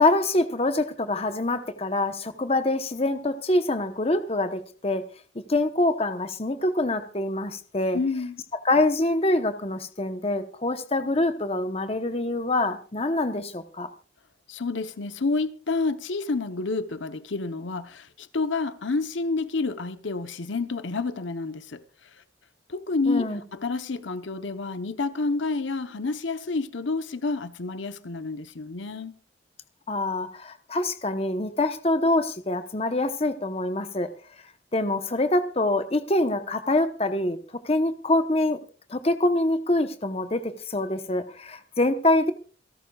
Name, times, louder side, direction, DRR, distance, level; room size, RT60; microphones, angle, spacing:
voice 1, 0.0-5.1 5.5-8.0 8.6-13.9 23.1-23.4 29.9-34.1 34.7-37.4 37.6-38.6 38.9-42.3, left 2 dB, 30° left, 0.9 m, -25 dB
voice 2, 7.9-8.4 14.5-21.8 22.7-29.2, left 3 dB, 70° left, 0.9 m, -29 dB
28.0 x 12.5 x 2.4 m
head